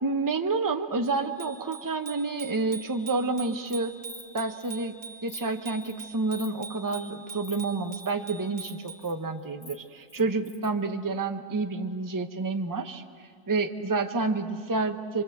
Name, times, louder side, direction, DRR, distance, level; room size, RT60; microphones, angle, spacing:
voice 1, 0.0-3.9 4.3-5.0 5.2-13.0 13.5-15.2, right 3 dB, 15° right, 6 dB, 0.7 m, -29 dB
Bicycle bell, 1.0-9.1, right 5 dB, 40° right, 2.4 m, -44 dB
Insect, 3.4-3.8 4.0-4.3 4.6-4.7 5.1-5.4 5.8-6.0 6.3-6.5 6.9-7.1 7.4-7.6 7.8-8.1 8.6-9.1 9.4-10.7, left 3 dB, 45° left, 2.6 m, -47 dB
28.5 x 24.5 x 8.0 m, 2.5 s
omnidirectional pair, 1.9 m